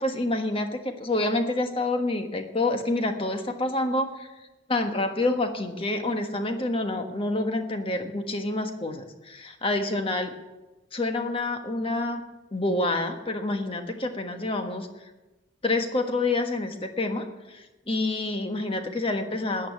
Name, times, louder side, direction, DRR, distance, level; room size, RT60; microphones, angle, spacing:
voice 1, 0.0-4.3 4.7-10.3 10.9-12.2 12.5-14.9 15.6-19.7, left 2 dB, 30° left, 6 dB, 1.4 m, -28 dB
14.0 x 9.1 x 9.5 m, 1.1 s
head